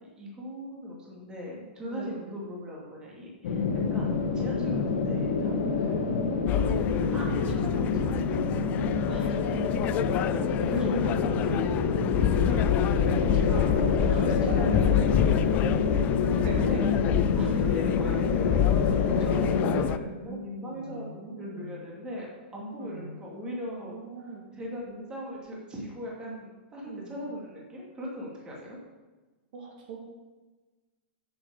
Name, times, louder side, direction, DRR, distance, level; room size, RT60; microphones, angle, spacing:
voice 1, 0.2-3.6 3.9-5.9 7.0-8.9 10.7-13.7 14.1-15.8 16.4-16.8 17.3-22.3 22.5-24.0 24.5-28.8, left 1 dB, 15° right, -3 dB, 2.5 m, -39 dB
voice 2, 1.9-2.4 5.7-6.1 9.1-9.4 12.9-13.3 13.8-14.5 15.5-15.7 16.3-16.6 17.4-17.5 19.4-21.8 22.8-23.2 23.8-24.5 26.8-27.2 29.5-30.0, right 5 dB, 55° right, 0 dB, 2.2 m, -42 dB
sound 1, 3.4-19.8, left 4 dB, 65° left, 1.7 m, -27 dB
sound 2, 6.5-20.0, left 12 dB, 25° left, 0.3 m, -28 dB
7.8 x 7.4 x 6.5 m, 1.2 s
hypercardioid pair, 150°, 6 cm